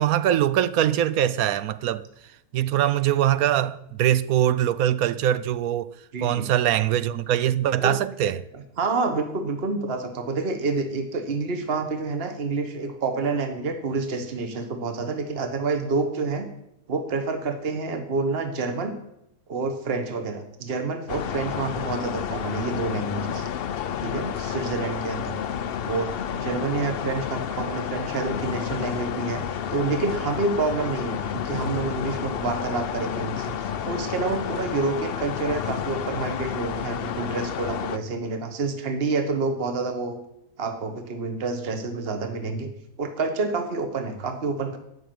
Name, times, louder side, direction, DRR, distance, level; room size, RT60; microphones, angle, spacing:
voice 1, 0.0-2.1 2.5-5.9 6.2-8.4, right 11 dB, 75° right, 1.1 m, -22 dB
voice 2, 6.1-6.5 7.8-7.9 8.2-16.5 16.9-18.9 19.5-23.4 24.0-25.4 25.8-29.4 29.7-40.2 40.6-42.7 43.0-44.8, right 3 dB, 45° right, 1.5 m, -28 dB
sound 1, 21.1-38.0, left 8 dB, 60° left, 0.6 m, -30 dB
13.5 x 6.4 x 9.3 m
omnidirectional pair, 1.5 m